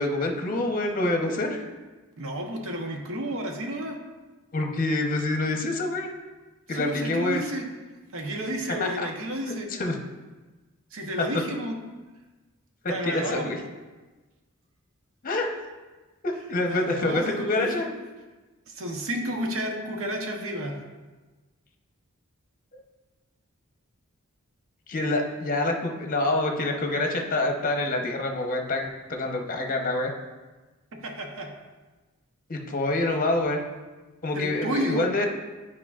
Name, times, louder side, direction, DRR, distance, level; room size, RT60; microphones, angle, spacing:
voice 1, 0.0-1.6 4.5-6.1 6.7-7.4 8.8-9.1 9.5-10.0 13.0-13.6 15.2-15.5 16.2-17.9 24.9-30.1 32.5-33.6 34.2-35.3, left 2 dB, 40° left, 2 dB, 0.8 m, -26 dB
voice 2, 2.2-4.0 6.7-7.7 8.1-9.7 10.9-11.8 12.9-13.5 16.7-17.9 18.7-20.8 31.0-31.5 34.3-35.1, right 1 dB, 65° right, 2 dB, 0.9 m, -31 dB
9.6 x 4.8 x 2.4 m, 1.2 s
head